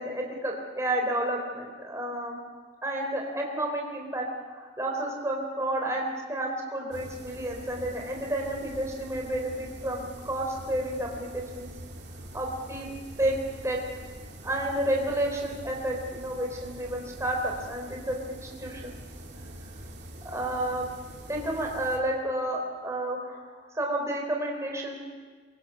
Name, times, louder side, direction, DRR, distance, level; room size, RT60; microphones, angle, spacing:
voice 1, 0.0-2.4 2.8-11.7 12.3-12.9 13.2-13.8 14.4-18.9 20.2-20.9 21.3-23.4 23.7-25.0, right 1 dB, 15° right, 0 dB, 3.7 m, -31 dB
sound 1, 6.9-22.0, right 1 dB, 55° right, 3.3 m, -44 dB
23.0 x 23.0 x 5.9 m, 1.5 s
head